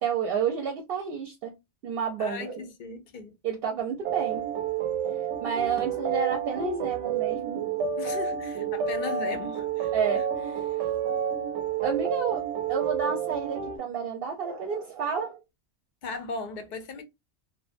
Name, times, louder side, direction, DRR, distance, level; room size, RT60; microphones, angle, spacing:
voice 1, 0.0-1.5 1.8-2.6 3.4-4.5 5.4-7.6 9.9-10.9 11.8-15.4, right 6 dB, 65° right, 0.7 m, -30 dB
voice 2, 2.2-3.3 8.0-10.2 16.0-17.0, left 3 dB, 60° left, 0.5 m, -37 dB
sound 1, 4.0-13.8, right 8 dB, 90° right, 0.9 m, -30 dB
2.4 x 2.1 x 2.4 m
omnidirectional pair, 1.2 m